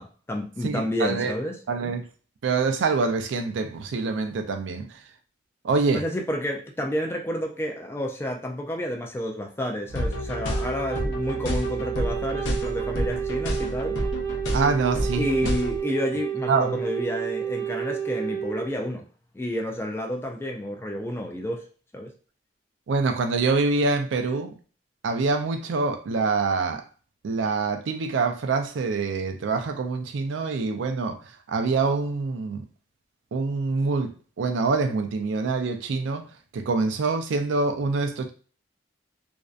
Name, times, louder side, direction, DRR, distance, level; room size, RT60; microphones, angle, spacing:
voice 1, 0.0-1.6 5.9-14.0 15.1-19.0 19.3-21.6 21.9-22.1, left 1 dB, 15° left, 0.3 m, -30 dB
voice 2, 0.6-1.3 1.7-2.0 2.4-4.9 5.6-6.0 14.5-15.3 16.5-16.8 22.9-24.6 25.0-26.8 27.2-31.2 31.5-32.7 33.3-36.3 36.5-38.3, right 4 dB, 90° right, 0.4 m, -25 dB
sound 1, 9.9-15.8, equal, 80° left, 0.6 m, -30 dB
Wind instrument woodwind instrument, 10.1-18.7, right 8 dB, 40° right, 0.7 m, -31 dB
2.5 x 2.1 x 2.4 m
head